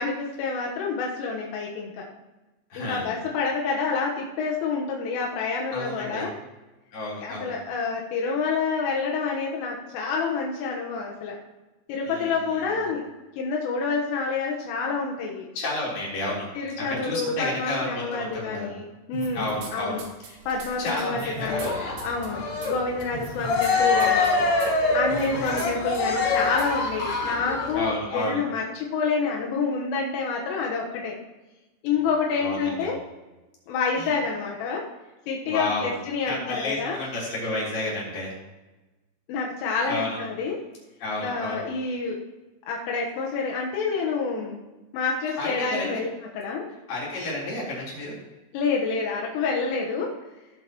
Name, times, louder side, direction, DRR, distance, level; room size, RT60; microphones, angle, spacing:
voice 1, 0.0-2.1 2.8-6.3 7.2-11.4 11.9-13.1 13.4-15.5 16.6-20.0 20.5-21.7 22.0-24.5 24.9-31.2 31.8-33.0 33.7-34.9 35.3-37.0 39.3-40.6 41.2-42.2 42.7-44.6 44.9-46.1 46.3-46.7 48.5-50.1, left 4 dB, 85° left, -1 dB, 3.8 m, -28 dB
voice 2, 2.7-3.2 5.7-6.2 6.9-7.5 12.0-12.3 15.6-16.5 16.8-18.7 19.3-20.0 20.3-20.4 20.8-21.7 25.1-25.3 27.7-28.4 32.4-32.9 34.0-34.1 35.5-35.9 36.3-38.3 39.9-40.2 41.0-41.7 45.4-46.0 46.9-48.1, left 2 dB, 45° left, -6 dB, 5.3 m, -31 dB
sound 1, 19.1-19.7 20.0-21.7 22.0-22.3 22.6-22.7 23.0-23.7 24.0-24.3 24.6-24.7 25.1-25.7 26.0-26.1 26.6-26.7, right 4 dB, 85° right, 4.3 m, -39 dB
Cheering, 21.4-27.8, left 3 dB, 70° left, 4.4 m, -25 dB
18.0 x 8.0 x 3.0 m, 1.1 s
omnidirectional pair, 5.6 m